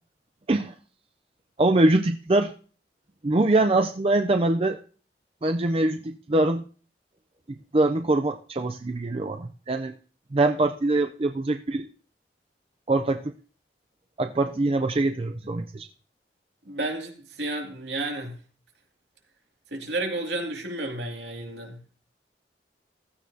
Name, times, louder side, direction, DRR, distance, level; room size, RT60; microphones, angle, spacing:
voice 1, 1.6-2.5 3.2-4.8 5.4-6.6 7.5-10.0 10.3-11.9 12.9-13.3 14.2-15.9, right 2 dB, 30° right, 0.5 m, -23 dB
voice 2, 16.7-18.3 19.7-21.8, right 2 dB, 80° right, 2.4 m, -31 dB
15.5 x 14.0 x 2.8 m
head